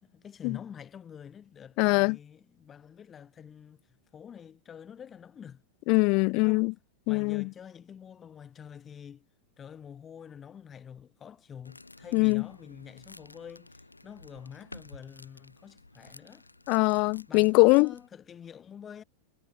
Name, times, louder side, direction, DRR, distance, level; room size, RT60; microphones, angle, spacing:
voice 1, 0.0-5.6 6.3-6.7 7.1-9.3 9.6-16.5 17.3-19.0, left 8 dB, 25° left, 3.2 m, -47 dB
voice 2, 1.8-2.2 5.9-6.7 7.1-7.5 12.1-12.4 16.7-17.9, left 31 dB, 45° left, 0.5 m, -22 dB
sound 1, 11.6-18.1, left 2 dB, 85° left, 3.4 m, -52 dB
figure-of-eight pair, 90°, 0 cm